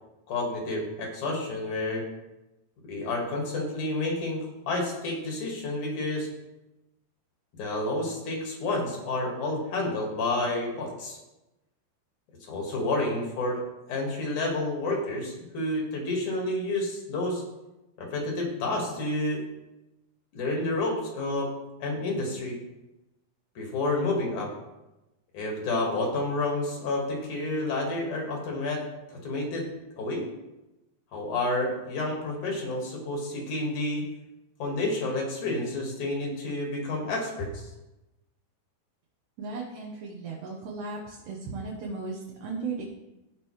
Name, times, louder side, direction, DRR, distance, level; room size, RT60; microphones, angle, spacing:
voice 1, 0.3-2.0 2.9-6.3 7.6-11.2 12.5-13.6 13.9-17.4 18.0-19.4 20.3-21.5 21.8-22.6 23.6-24.5 25.3-28.8 29.1-29.7 30.0-30.2 31.1-34.1 34.6-37.7, left 2 dB, 65° left, 0 dB, 3.1 m, -30 dB
voice 2, 39.4-42.8, right 4 dB, 70° right, -2 dB, 2.5 m, -36 dB
16.0 x 5.3 x 3.2 m, 0.98 s
omnidirectional pair, 3.9 m